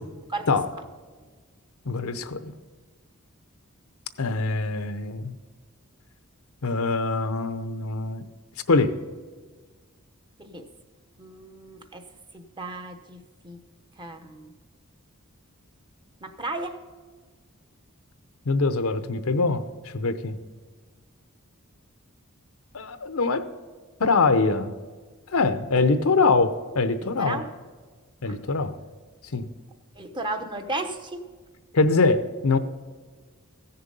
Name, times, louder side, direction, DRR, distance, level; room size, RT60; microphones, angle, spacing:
voice 1, 1.9-2.5 4.2-5.3 6.6-8.3 8.7-8.9 18.5-20.4 22.7-23.4 24.0-24.7 25.3-27.4 28.2-28.8 29.3-29.5 31.7-32.6, left 3 dB, 70° left, 11 dB, 0.7 m, -23 dB
voice 2, 11.2-12.0 12.3-13.6 14.0-14.5 16.2-16.8 27.2-27.5 28.2-28.4 30.0-31.2, right 2 dB, 20° right, 7 dB, 0.8 m, -34 dB
15.5 x 6.8 x 5.4 m, 1.5 s
head